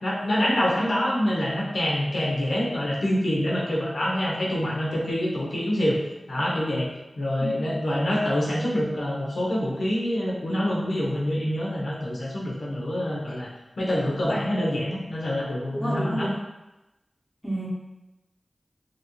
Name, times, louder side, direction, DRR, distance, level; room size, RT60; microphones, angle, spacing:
voice 1, 0.0-6.0 6.3-6.9 7.2-13.5 13.8-16.3, left 1 dB, 90° left, -5 dB, 0.7 m, -26 dB
voice 2, 7.4-7.7 14.1-14.4 15.7-16.4 17.4-17.7, right 1 dB, 20° left, -6 dB, 1.0 m, -30 dB
2.9 x 2.6 x 2.9 m, 1.0 s
wide cardioid pair, 65°, 0 cm